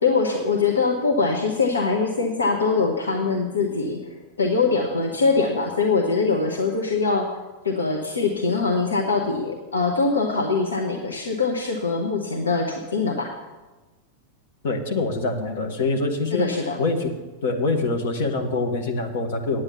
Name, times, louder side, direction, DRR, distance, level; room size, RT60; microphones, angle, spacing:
voice 1, 0.0-4.0 4.4-7.3 7.6-13.3 16.3-16.8, left 4 dB, 75° left, 1 dB, 1.1 m, -23 dB
voice 2, 14.6-16.5 16.8-17.1 17.4-19.6, left 3 dB, 55° left, 4 dB, 1.6 m, -24 dB
9.5 x 9.0 x 7.0 m, 1.2 s
figure-of-eight pair, 90°, 0 cm